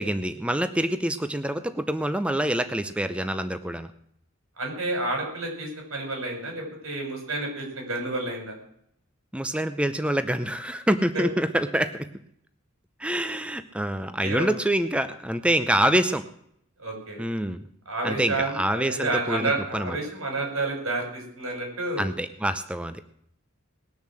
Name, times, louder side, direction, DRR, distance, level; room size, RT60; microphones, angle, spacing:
voice 1, 0.0-3.9 9.3-12.1 13.0-16.2 17.2-17.7 18.0-20.0 22.0-23.0, right 1 dB, 5° right, 11 dB, 0.6 m, -26 dB
voice 2, 4.6-8.5 11.1-11.2 14.2-14.5 16.8-17.2 17.9-22.0, right 2 dB, 90° right, 1 dB, 6.1 m, -30 dB
19.5 x 7.1 x 7.6 m, 0.70 s
head